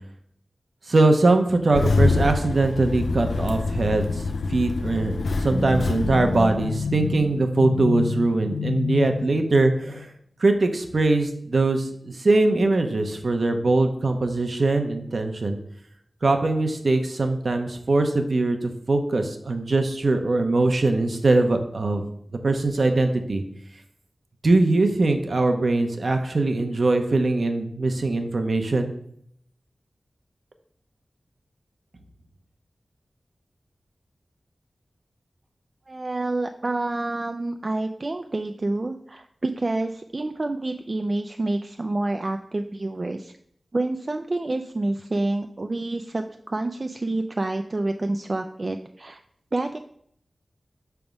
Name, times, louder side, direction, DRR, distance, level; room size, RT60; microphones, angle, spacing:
voice 1, 0.9-4.2 4.5-10.1 10.4-15.6 16.2-22.0 22.4-23.4 24.4-28.9, right 2 dB, 65° right, 5 dB, 0.8 m, -22 dB
Engine starting, 1.7-7.3, left 3 dB, 90° left, 0.4 m, -26 dB
sound 1, 5.5-10.1, left 4 dB, 70° left, 1.0 m, -29 dB
voice 2, 35.9-43.3 43.7-49.2 49.5-49.8, right 2 dB, 40° right, 6 dB, 0.3 m, -28 dB
5.9 x 3.5 x 5.2 m, 0.68 s
wide cardioid pair, 70°, 0 cm